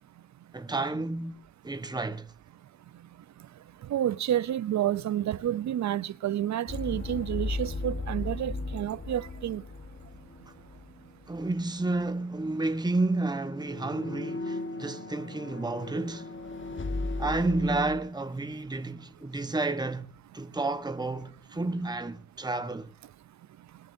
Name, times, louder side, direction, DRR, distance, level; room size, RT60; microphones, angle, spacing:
voice 1, 0.5-2.3 11.3-16.3 17.2-22.9, right 2 dB, 15° right, 1.2 m, -31 dB
voice 2, 3.9-9.6, right 11 dB, 65° right, 0.7 m, -29 dB
sound 1, 6.7-11.5 11.8-12.0 13.5-18.0, left 2 dB, 40° left, 1.5 m, -36 dB
21.5 x 11.0 x 2.7 m
supercardioid pair, 50°, 30 cm